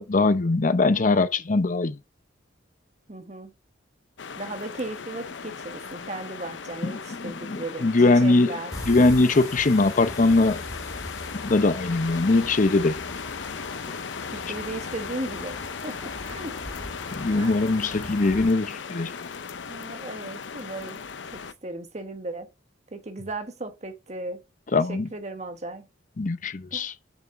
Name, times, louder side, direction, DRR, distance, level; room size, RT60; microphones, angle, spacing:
voice 1, 0.0-2.0 6.8-8.5 8.9-10.6 11.4-13.0 17.1-19.1 24.7-25.1 26.2-26.9, left 3 dB, 45° left, 0.6 m, -21 dB
voice 2, 3.1-3.5 4.4-7.9 8.2-8.7 14.3-15.6 15.8-16.6 17.4-17.6 19.7-21.0 21.3-22.5 22.9-24.4 24.9-25.9 26.7-26.9, right 2 dB, 40° right, 1.4 m, -36 dB
sound 1, 4.2-21.5, left 5 dB, 75° left, 0.7 m, -37 dB
sound 2, 8.7-18.5, left 1 dB, 20° left, 2.3 m, -41 dB
7.2 x 6.3 x 6.9 m
head